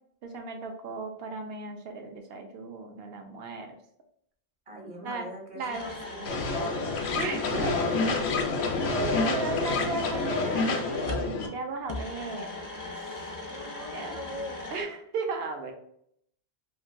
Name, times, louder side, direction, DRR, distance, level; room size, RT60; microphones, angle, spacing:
voice 1, 0.2-3.7 5.0-5.3 5.6-5.9 7.1-8.1 8.8-12.5 13.9-14.2 14.7-15.7, right 3 dB, 70° right, 4 dB, 0.8 m, -35 dB
voice 2, 4.7-7.9 12.9-14.8, equal, 40° right, 1 dB, 0.7 m, -43 dB
sound 1, 5.7-11.3 11.9-14.8, left 2 dB, 30° left, 0.3 m, -39 dB
sound 2, 6.3-11.5, left 3 dB, 85° left, 0.9 m, -28 dB
3.1 x 2.5 x 2.4 m, 0.69 s
omnidirectional pair, 1.1 m